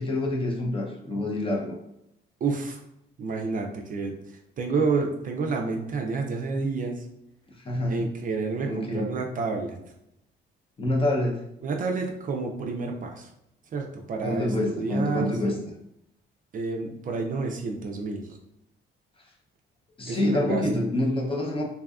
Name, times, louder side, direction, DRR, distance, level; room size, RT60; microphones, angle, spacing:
voice 1, 0.0-1.8 7.6-8.1 8.6-9.1 10.8-11.4 14.2-15.6 20.0-21.6, left 1 dB, 25° left, -1 dB, 0.6 m, -26 dB
voice 2, 2.4-2.8 3.2-4.1 4.6-7.1 7.9-9.8 11.6-13.3 13.7-15.5 16.5-18.4 20.1-20.6, right 4 dB, 45° right, 2 dB, 0.4 m, -29 dB
2.7 x 2.2 x 2.3 m, 0.80 s
cardioid pair, 90°, 20 cm